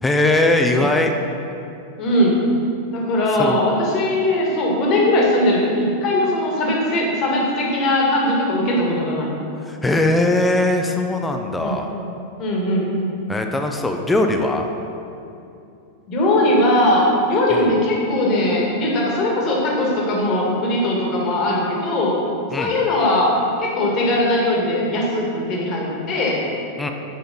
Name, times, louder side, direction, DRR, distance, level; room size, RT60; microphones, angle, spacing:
voice 1, 0.0-1.1 3.4-3.6 9.6-11.9 13.3-14.7 17.5-17.7 22.5-22.7 26.8-26.9, left 2 dB, 10° left, 4 dB, 0.5 m, -20 dB
voice 2, 2.0-2.4 2.9-9.3 11.6-11.8 12.4-12.9 16.1-22.1 22.6-23.3 23.6-26.4, left 1 dB, 35° left, -2 dB, 1.5 m, -19 dB
6.8 x 5.0 x 3.9 m, 2.7 s
figure-of-eight pair, 90°, 0 cm